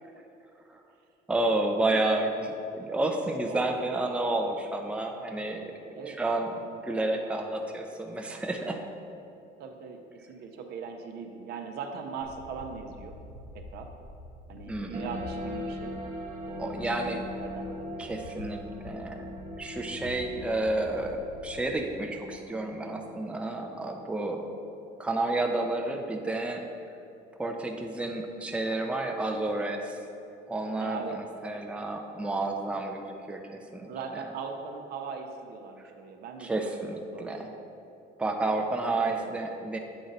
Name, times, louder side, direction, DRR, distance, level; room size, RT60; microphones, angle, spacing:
voice 1, 1.3-8.8 14.7-15.1 16.6-17.2 18.0-19.3 19.6-24.5 25.0-26.6 27.4-30.0 30.5-33.9 36.4-37.6 38.2-39.8, right 2 dB, 5° right, 3 dB, 0.5 m, -31 dB
voice 2, 3.4-4.0 6.0-6.2 9.6-10.0 10.3-13.2 13.5-13.9 14.5-15.9 16.4-18.0 30.8-31.2 33.9-36.5 36.9-37.4 39.0-39.4, right 5 dB, 75° right, 4 dB, 0.6 m, -40 dB
sound 1, 12.2-22.0, left 2 dB, 85° left, 0.6 m, -47 dB
sound 2, 14.9-25.9, left 1 dB, 55° right, 1.0 m, -41 dB
7.8 x 3.9 x 4.0 m, 2.7 s
cardioid pair, 110°, 17 cm